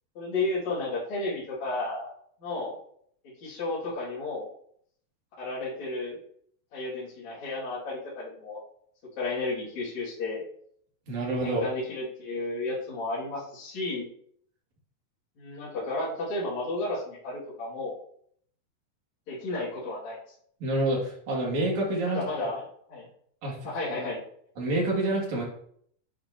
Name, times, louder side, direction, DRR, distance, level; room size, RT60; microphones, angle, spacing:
voice 1, 0.2-2.1 2.4-2.8 3.4-4.5 5.4-6.2 6.7-8.6 9.2-10.4 11.4-14.1 15.4-18.0 19.3-20.2 22.1-23.1 23.6-24.2, left 2 dB, 55° left, -9 dB, 3.8 m, -32 dB
voice 2, 11.1-11.7 20.6-22.2 23.4-23.7 24.0-24.1 24.6-25.4, right 1 dB, 55° right, -3 dB, 4.0 m, -27 dB
9.1 x 8.5 x 3.0 m, 0.65 s
omnidirectional pair, 4.1 m